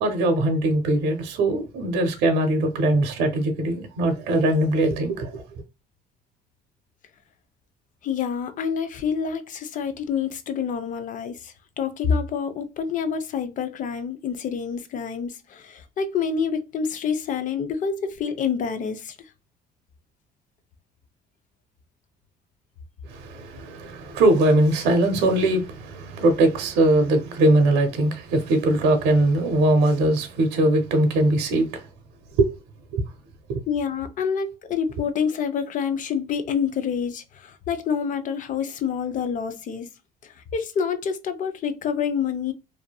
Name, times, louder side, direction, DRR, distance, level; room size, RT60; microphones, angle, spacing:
voice 1, 0.0-5.4 23.1-31.8 32.4-32.5 32.9-33.0 33.5-33.6, right 1 dB, 90° right, 0.7 m, -21 dB
voice 2, 8.0-19.2 33.7-39.9 40.2-42.5, left 6 dB, 50° left, 0.5 m, -27 dB
2.6 x 2.5 x 2.2 m
cardioid pair, 110°, 17 cm